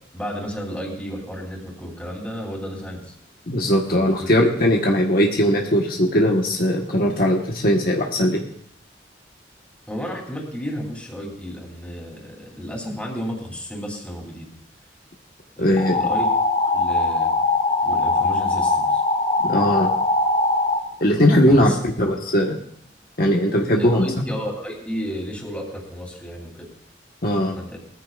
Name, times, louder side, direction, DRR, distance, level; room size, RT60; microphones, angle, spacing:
voice 1, 0.0-3.1 3.9-4.3 9.9-14.5 15.6-16.3 16.7-17.3 17.8-19.0 21.5-22.1 23.8-26.7 27.5-27.8, equal, 10° left, -1 dB, 3.3 m, -33 dB
voice 2, 3.5-8.4 15.6-15.9 19.4-19.9 21.0-22.6 23.2-24.1 27.2-27.5, equal, 55° left, 0 dB, 1.3 m, -19 dB
sound 1, 15.8-20.8, left 3 dB, 30° left, 2.7 m, -21 dB
20.5 x 14.5 x 2.5 m, 0.69 s
head